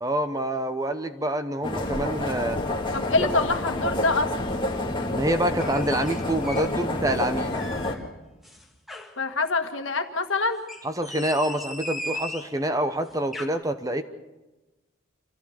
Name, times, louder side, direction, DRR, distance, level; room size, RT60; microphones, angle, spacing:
voice 1, 0.0-2.6 5.1-7.5 10.8-14.0, right 1 dB, 15° right, 9 dB, 1.0 m, -27 dB
sound 1, 1.6-7.9, left 2 dB, 25° left, 2.1 m, -28 dB
voice 2, 2.9-4.3 9.2-10.6, left 3 dB, 65° left, 6 dB, 1.7 m, -25 dB
sound 2, 5.6-6.7 7.1-8.0 8.4-9.2 10.5-12.5 13.1-13.5, left 1 dB, ahead, 2.0 m, -37 dB
27.5 x 15.0 x 7.1 m, 1.1 s
head